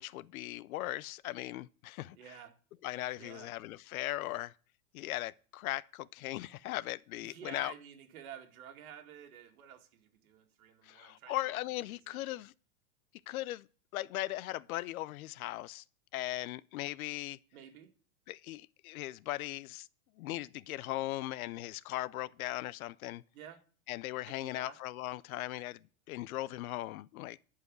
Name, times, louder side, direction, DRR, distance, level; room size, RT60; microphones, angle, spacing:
voice 1, 0.0-2.2 2.8-4.5 4.9-7.7 10.8-12.5 13.3-13.7 13.9-15.8 16.1-17.4 18.3-19.9 20.2-23.2 23.9-27.4, left 16 dB, 75° left, 0.6 m, -38 dB
voice 2, 2.1-2.5 3.2-3.5 7.2-11.4 11.9-12.4 17.5-17.9 23.3-23.6 24.3-24.8, right 9 dB, 70° right, 2.3 m, -51 dB
11.0 x 4.9 x 7.7 m
supercardioid pair, 170°, 43 cm